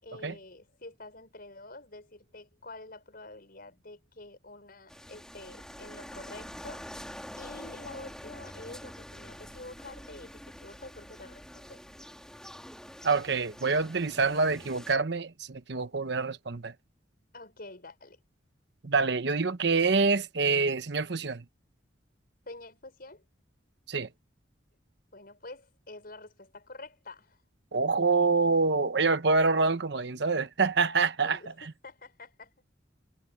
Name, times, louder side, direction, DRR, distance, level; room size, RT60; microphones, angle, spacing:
voice 1, 0.0-6.9 7.4-11.8 17.3-18.2 22.5-23.2 25.1-27.4 31.2-32.5, left 2 dB, 50° left, 6.0 m, -47 dB
sound 1, 4.9-15.0, equal, 5° left, 3.1 m, -46 dB
voice 2, 13.0-16.7 18.8-21.4 23.9-24.1 27.7-31.4, right 4 dB, 65° right, 1.0 m, -26 dB
head